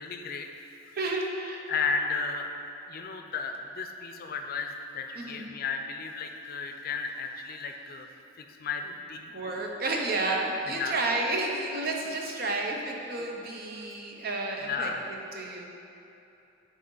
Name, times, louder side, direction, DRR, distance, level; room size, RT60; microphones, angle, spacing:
voice 1, 0.0-1.0 1.7-2.5 2.9-8.1 8.4-9.3 10.7-11.0 13.2-13.3 14.6-15.0, left 5 dB, 50° left, 5 dB, 0.5 m, -34 dB
voice 2, 0.9-1.6 5.2-5.5 9.3-15.7, right 2 dB, 50° right, 1 dB, 0.8 m, -31 dB
9.1 x 3.8 x 3.9 m, 2.9 s
head